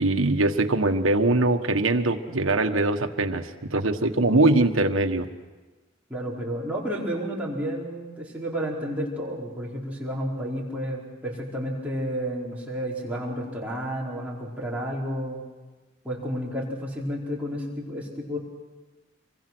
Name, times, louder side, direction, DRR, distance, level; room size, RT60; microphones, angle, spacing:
voice 1, 0.0-5.2, right 2 dB, 85° right, 6 dB, 1.5 m, -22 dB
voice 2, 6.1-15.4 16.0-18.4, equal, 5° right, -5 dB, 4.7 m, -31 dB
27.0 x 24.0 x 6.2 m, 1.3 s
head